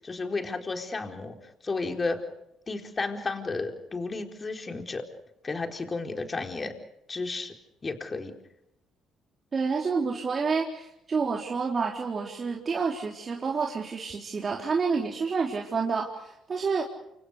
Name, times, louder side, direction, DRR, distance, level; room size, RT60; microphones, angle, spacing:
voice 1, 0.0-1.3 1.6-2.3 2.7-5.0 5.4-6.7 7.1-7.5 7.8-8.3, left 3 dB, 30° left, 4 dB, 4.3 m, -32 dB
voice 2, 9.5-16.8, right 5 dB, 40° right, -1 dB, 3.9 m, -29 dB
29.0 x 27.0 x 5.1 m, 0.82 s
supercardioid pair, 65°, 0 cm